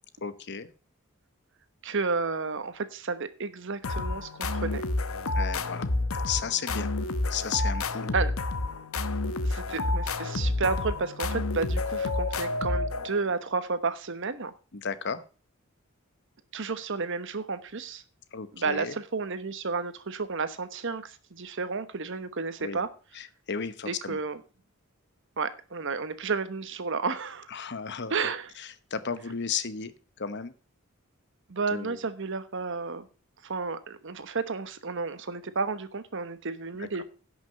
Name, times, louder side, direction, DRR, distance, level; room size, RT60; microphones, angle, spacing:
voice 1, 0.2-0.7 5.3-5.9 6.2-6.9 7.3-8.2 14.7-15.2 18.3-19.0 22.6-22.8 23.1-24.2 27.5-28.2 28.6-29.9 30.2-30.5 31.7-32.0 36.8-37.0, left 6 dB, 55° left, 13 dB, 1.0 m, -34 dB
voice 2, 1.8-4.8 8.1-8.3 9.4-14.5 16.5-18.0 18.5-22.9 23.9-24.4 25.4-27.5 28.1-28.5 31.5-33.1 33.4-37.0, right 4 dB, 60° right, 12 dB, 1.1 m, -32 dB
sound 1, 3.8-13.3, left 2 dB, 80° left, 0.9 m, -29 dB
11.0 x 6.2 x 6.4 m, 0.36 s
head